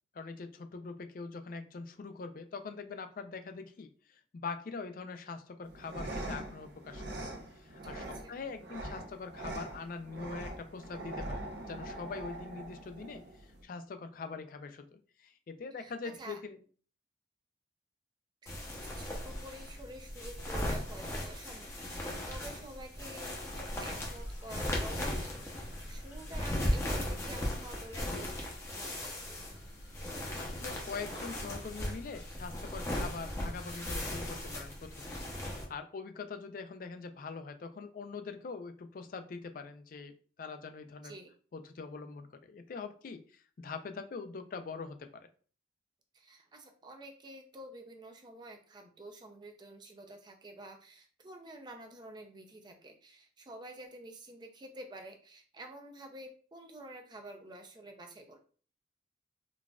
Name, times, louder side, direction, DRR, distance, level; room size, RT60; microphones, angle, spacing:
voice 1, 0.1-7.0 7.6-16.6 30.4-35.1 35.5-41.1 41.5-45.0, left 4 dB, 50° left, 8 dB, 0.4 m, -43 dB
sound 1, 5.6-13.6, right 1 dB, 65° right, 0.7 m, -43 dB
voice 2, 7.8-8.3 15.8-16.4 18.4-28.3 28.7-29.3 41.0-41.3 46.1-58.4, right 1 dB, 25° right, 3 dB, 0.5 m, -49 dB
sound 2, 18.5-35.6, left 1 dB, 15° left, 0.7 m, -37 dB
sound 3, 22.9-34.6, left 1 dB, 65° left, 1.2 m, -57 dB
3.9 x 2.4 x 2.3 m, 0.42 s
head